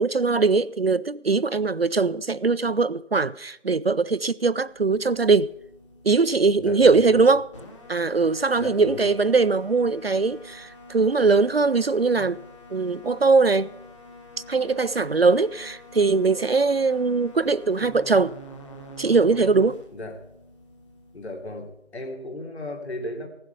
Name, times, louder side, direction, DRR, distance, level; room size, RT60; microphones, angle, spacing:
voice 1, 0.0-5.5 6.0-7.5 7.9-12.4 12.7-13.7 14.5-18.4 19.0-19.8, right 4 dB, 55° right, 0.4 m, -21 dB
sound 1, 4.6-21.8, equal, 25° left, 1.7 m, -46 dB
voice 2, 6.6-7.2 8.6-9.1 19.9-20.2 21.1-23.3, left 1 dB, 60° left, 3.2 m, -35 dB
16.5 x 7.6 x 7.0 m
figure-of-eight pair, 165°, 37 cm